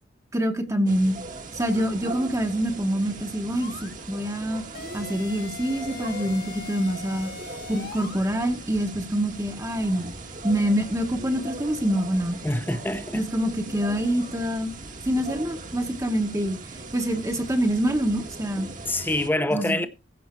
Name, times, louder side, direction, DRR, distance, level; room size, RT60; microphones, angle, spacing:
voice 1, 0.3-1.2 1.5-4.6 4.9-7.3 7.7-10.1 10.4-12.4 13.1-14.7 15.0-16.6 16.9-18.7 19.5-19.9, equal, 20° right, 1.1 m, -26 dB
sound 1, 0.9-19.3, right 2 dB, 45° right, 1.5 m, -39 dB
sound 2, 3.6-3.9 4.7-8.3, left 4 dB, 55° left, 1.4 m, -41 dB
voice 2, 12.4-13.2 18.6-19.9, left 1 dB, 10° left, 0.8 m, -26 dB
15.5 x 5.8 x 4.4 m
head